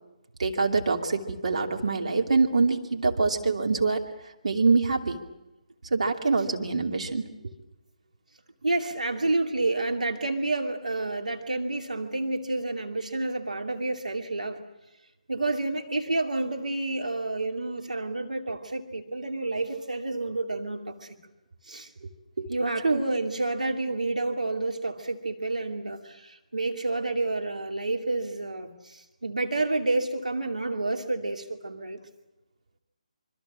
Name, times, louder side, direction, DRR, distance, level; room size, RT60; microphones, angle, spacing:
voice 1, 0.4-5.2 5.9-7.5 22.0-22.1 22.4-22.5 22.8-23.0, right 4 dB, 60° right, 2 dB, 2.7 m, -25 dB
voice 2, 8.6-14.6 15.3-21.2 21.6-21.9 22.5-32.0, right 2 dB, 80° right, 3 dB, 2.7 m, -29 dB
26.0 x 25.0 x 7.5 m, 0.97 s
figure-of-eight pair, 145°, 4 cm